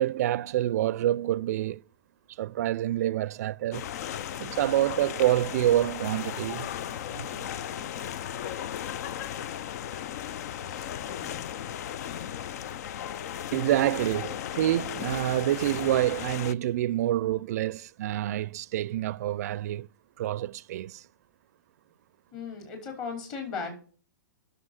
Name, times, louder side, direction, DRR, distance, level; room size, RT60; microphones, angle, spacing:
voice 1, 0.0-1.8 2.4-3.9 4.4-6.7 7.1-7.3 13.5-19.9 20.2-21.0, right 13 dB, 55° right, 0.5 m, -27 dB
sound 1, 3.7-16.5, left 10 dB, 55° left, 0.5 m, -36 dB
voice 2, 10.6-11.5 22.3-23.7, left 5 dB, 40° left, 5.4 m, -38 dB
9.4 x 7.0 x 7.5 m
hypercardioid pair, 115°, 10 cm